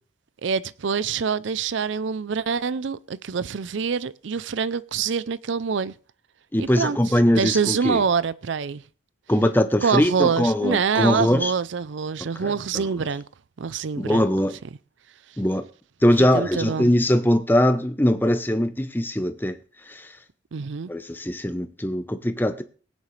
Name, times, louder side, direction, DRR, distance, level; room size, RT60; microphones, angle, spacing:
voice 1, 0.4-5.9 6.6-7.0 7.4-8.8 9.8-13.2 13.6-14.3 16.3-16.9 20.5-20.9, right 6 dB, 75° right, 0.5 m, -25 dB
voice 2, 6.5-8.0 9.3-11.5 12.4-12.9 14.0-14.6 15.4-15.6 16.0-19.6 19.9-20.1 20.9-22.6, left 1 dB, 10° left, 0.7 m, -21 dB
18.0 x 9.6 x 3.2 m
head